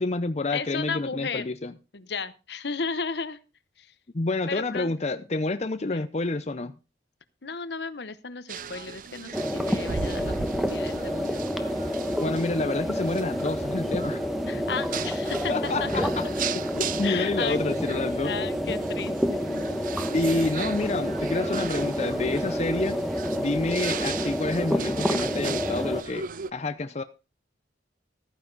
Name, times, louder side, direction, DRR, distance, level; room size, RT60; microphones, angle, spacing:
voice 1, 0.0-1.7 4.1-6.8 12.2-14.2 15.5-16.2 16.5-18.3 20.1-23.0 23.4-27.0, left 2 dB, 35° left, 0.6 m, -28 dB
voice 2, 0.5-1.5 1.9-3.4 3.8-3.9 4.5-4.9 5.9-6.1 7.4-11.6 12.0-12.4 14.5-16.2 17.0-17.6 18.2-19.4, left 5 dB, 65° left, 0.9 m, -34 dB
sound 1, 8.5-26.5, right 7 dB, 50° right, 0.5 m, -38 dB
sound 2, 9.3-26.0, equal, ahead, 1.1 m, -29 dB
13.5 x 9.7 x 4.0 m
head